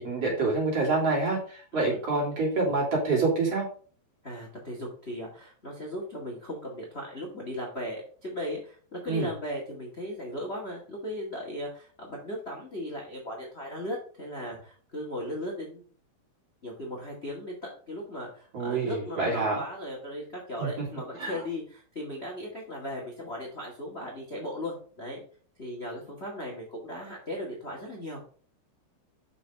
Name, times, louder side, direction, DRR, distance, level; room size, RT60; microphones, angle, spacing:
voice 1, 0.0-3.7 9.1-9.3 18.5-19.6 20.6-20.9 21.2-21.4, right 3 dB, 35° right, -3 dB, 4.2 m, -27 dB
voice 2, 4.2-15.8 16.6-25.2 25.6-28.2, left 1 dB, 35° left, -2 dB, 1.0 m, -37 dB
6.8 x 6.2 x 5.2 m, 0.44 s
omnidirectional pair, 4.9 m